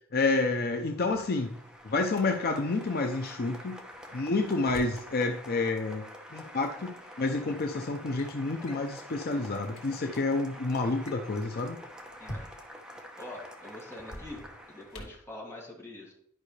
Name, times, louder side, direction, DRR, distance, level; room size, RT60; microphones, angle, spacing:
voice 1, 0.1-1.5 1.8-3.8 4.1-6.1 6.3-11.8, left 3 dB, 50° left, 4 dB, 0.6 m, -29 dB
Applause, 0.7-15.2, equal, 5° right, 0.9 m, -47 dB
Drawer open or close, 0.9-2.3 3.9-5.1 6.4-6.5 7.3-7.6 7.9-8.3 8.7-8.9 9.4-9.5 9.7-9.9 10.9-12.8 14.0-15.3, equal, 80° left, 2.0 m, -46 dB
voice 2, 13.2-16.1, left 1 dB, 15° left, -3 dB, 2.2 m, -44 dB
11.0 x 5.4 x 3.2 m, 0.68 s
head